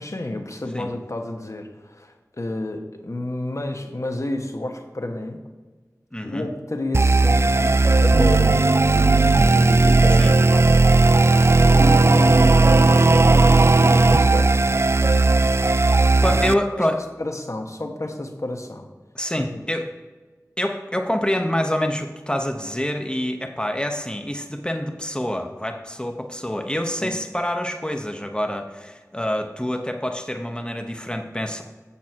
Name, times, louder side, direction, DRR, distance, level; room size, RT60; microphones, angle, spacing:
voice 1, 0.0-5.4 6.2-9.2 9.5-10.8 11.3-14.6 16.3-16.4 16.8-18.9 19.4-19.6 27.0-27.1, left 1 dB, 55° left, 4 dB, 1.3 m, -31 dB
voice 2, 6.1-6.5 10.2-10.3 16.2-17.0 19.1-19.8 20.6-31.6, left 1 dB, 15° left, 4 dB, 0.9 m, -26 dB
sound 1, 6.9-16.5, right 3 dB, 45° right, 0.3 m, -16 dB
8.6 x 7.1 x 4.5 m, 1.3 s
wide cardioid pair, 45°, 6 cm